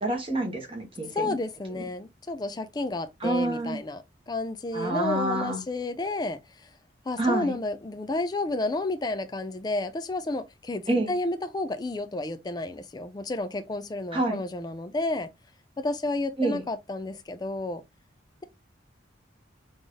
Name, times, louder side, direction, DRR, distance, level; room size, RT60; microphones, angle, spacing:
voice 1, 0.0-1.4 1.7-1.8 3.2-3.8 4.7-5.6 7.2-7.6 10.9-11.1 14.1-14.4 16.4-16.6, right 2 dB, 30° right, 1.3 m, -28 dB
voice 2, 1.1-6.7 7.1-15.3 15.8-17.8, left 2 dB, 20° left, 0.4 m, -31 dB
3.9 x 2.6 x 3.2 m
head